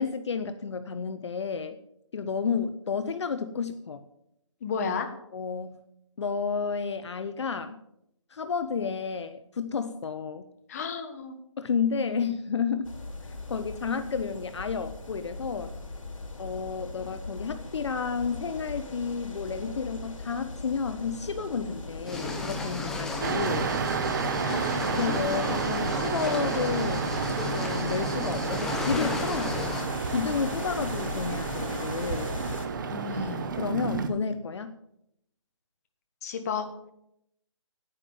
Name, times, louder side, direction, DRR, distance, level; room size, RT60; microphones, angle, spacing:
voice 1, 0.0-1.8 2.1-4.0 5.3-5.8 6.2-7.8 8.3-10.4 11.6-12.9 13.5-15.7 16.4-23.7 25.0-27.0 27.4-29.7 30.1-32.3 33.6-34.8, left 5 dB, 60° left, 10 dB, 0.8 m, -31 dB
voice 2, 4.6-5.1 10.7-11.3 24.4-25.0 32.9-33.5 36.2-36.6, left 5 dB, 30° left, 6 dB, 1.4 m, -33 dB
sound 1, 12.8-32.7, left 3 dB, 80° left, 3.6 m, -39 dB
sound 2, 22.1-29.8, left 2 dB, 5° left, 0.7 m, -34 dB
sound 3, 23.2-34.1, right 6 dB, 40° right, 1.1 m, -31 dB
9.7 x 9.3 x 7.0 m, 0.78 s
hypercardioid pair, 165°, 16 cm